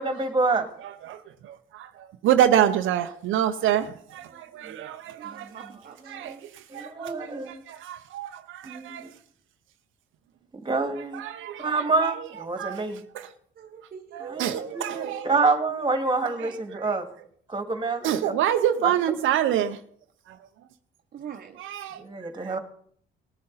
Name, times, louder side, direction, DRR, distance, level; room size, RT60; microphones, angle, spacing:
voice 1, 0.0-0.7 4.6-4.7 5.2-5.5 6.1-6.4 6.7-7.6 8.6-9.1 10.6-11.2 11.6-13.0 14.2-17.1 17.5-18.3 22.0-22.6, right 3 dB, 25° right, 2.0 m, -27 dB
voice 2, 0.8-5.7 6.1-9.2 10.7-12.3 12.6-12.9 13.1-13.3 14.1-15.3 16.2-17.0 18.0-19.8 20.3-20.5 21.6-22.6, right 10 dB, 80° right, 0.7 m, -28 dB
voice 3, 5.2-6.4 13.6-15.3 15.7-15.9 16.2-16.3 21.1-21.6, right 7 dB, 50° right, 1.0 m, -42 dB
18.5 x 9.6 x 4.0 m
cardioid pair, 90°, 20 cm